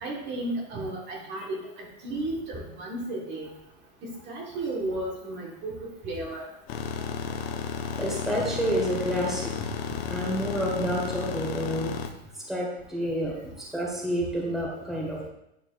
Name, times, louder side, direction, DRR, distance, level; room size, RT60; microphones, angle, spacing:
voice 1, 0.0-3.5 4.3-5.7 6.0-6.4, right 2 dB, 35° right, -1 dB, 1.5 m, -33 dB
sound 1, 6.7-12.1, left 6 dB, 70° left, 0.9 m, -33 dB
voice 2, 7.9-9.5 10.1-11.9 12.5-15.3, equal, ahead, -4 dB, 1.5 m, -29 dB
9.0 x 5.9 x 2.4 m, 0.81 s
supercardioid pair, 140°, 32 cm